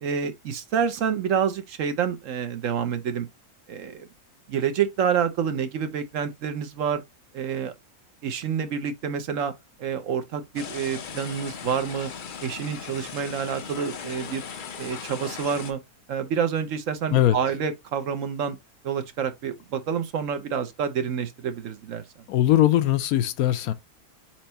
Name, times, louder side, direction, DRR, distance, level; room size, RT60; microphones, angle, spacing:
voice 1, 0.0-3.3 3.7-4.1 4.5-7.0 7.3-7.7 8.2-9.5 9.8-12.1 12.4-14.5 14.8-15.8 16.1-18.6 18.8-22.0, right 7 dB, 65° right, 1.0 m, -28 dB
sound 1, 10.5-15.7, left 6 dB, 55° left, 0.5 m, -38 dB
voice 2, 22.3-23.7, left 12 dB, 75° left, 1.0 m, -20 dB
4.5 x 4.3 x 2.7 m
omnidirectional pair, 1.6 m